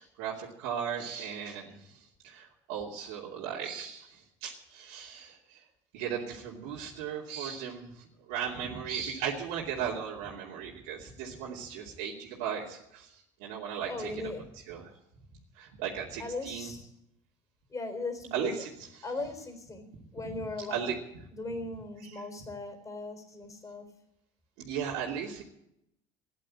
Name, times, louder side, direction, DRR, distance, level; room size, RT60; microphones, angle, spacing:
voice 1, 0.0-5.6 5.9-13.1 13.4-14.1 14.7-14.9 15.5-16.7 18.3-18.9 20.7-20.9 22.0-22.2 24.6-25.4, right 8 dB, 75° right, -4 dB, 2.8 m, -37 dB
voice 2, 13.9-14.5 16.2-16.9 17.7-18.6 19.0-20.8 21.3-23.9, left 3 dB, 20° left, 6 dB, 3.9 m, -38 dB
13.5 x 11.0 x 8.7 m, 0.79 s
supercardioid pair, 100°, 15 cm